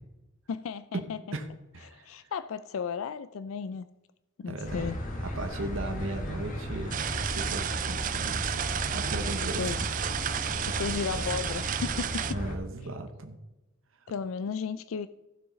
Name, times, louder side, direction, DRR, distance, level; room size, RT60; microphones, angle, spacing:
voice 1, 0.5-1.2 1.9-3.9 4.4-5.0 9.6-9.8 10.7-12.2 14.1-15.1, left 6 dB, 80° left, 13 dB, 0.4 m, -34 dB
voice 2, 1.7-2.3 4.5-4.9 5.2-8.6 8.8-10.0 12.3-13.4, right 2 dB, 70° right, 6 dB, 0.9 m, -37 dB
sound 1, 4.6-12.6, left 1 dB, 40° left, 1.5 m, -35 dB
sound 2, 6.9-12.3, right 10 dB, 40° right, 0.4 m, -32 dB
15.0 x 6.1 x 4.0 m, 1.0 s
head